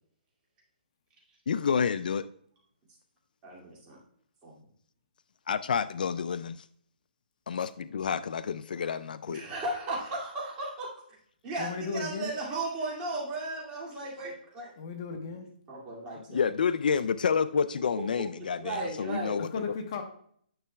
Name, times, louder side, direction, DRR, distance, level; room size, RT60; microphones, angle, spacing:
voice 1, 1.5-2.3 5.5-6.6 7.5-9.4 16.1-19.8, left 6 dB, 60° left, 14 dB, 0.3 m, -29 dB
voice 2, 3.4-4.0 4.4-4.5 9.3-10.9 11.4-14.7 15.7-16.4 18.6-19.4, right 2 dB, 15° right, -4 dB, 2.3 m, -35 dB
voice 3, 11.6-12.3 14.8-15.5 19.4-20.0, left 4 dB, 35° left, 4 dB, 1.0 m, -35 dB
9.9 x 6.7 x 2.2 m, 0.62 s
hypercardioid pair, 170°, 5 cm